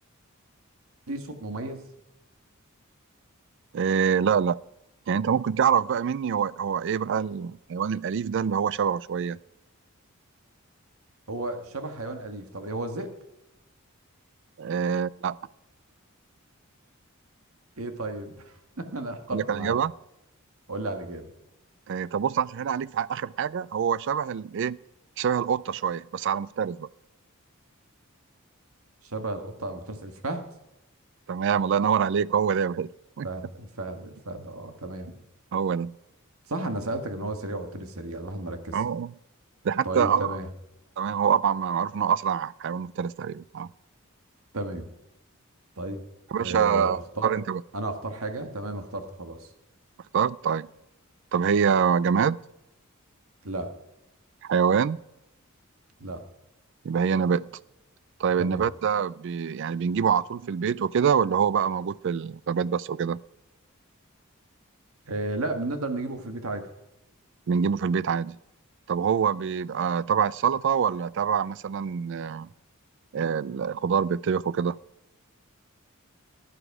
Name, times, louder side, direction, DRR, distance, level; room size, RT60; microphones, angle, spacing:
voice 1, 1.1-1.8 11.3-13.1 17.8-19.8 20.7-21.3 29.0-30.4 33.2-35.2 36.5-38.8 39.8-40.5 44.5-44.9 45.8-46.0 46.4-47.4 47.7-49.5 53.4-53.7 56.0-56.2 58.4-58.7 65.1-66.6, right 2 dB, 80° right, 7 dB, 1.6 m, -33 dB
voice 2, 3.7-4.6 5.1-9.4 14.6-15.4 19.3-19.9 21.9-24.8 25.2-26.9 31.3-32.9 33.2-33.3 35.5-36.0 38.7-39.1 39.6-40.4 41.0-43.7 46.3-47.6 50.1-50.7 51.3-52.4 54.4-55.0 56.8-57.5 58.2-63.2 67.5-68.4 68.9-72.5 73.1-74.8, right 7 dB, 55° right, 21 dB, 0.4 m, -25 dB
15.0 x 10.0 x 4.8 m, 0.89 s
head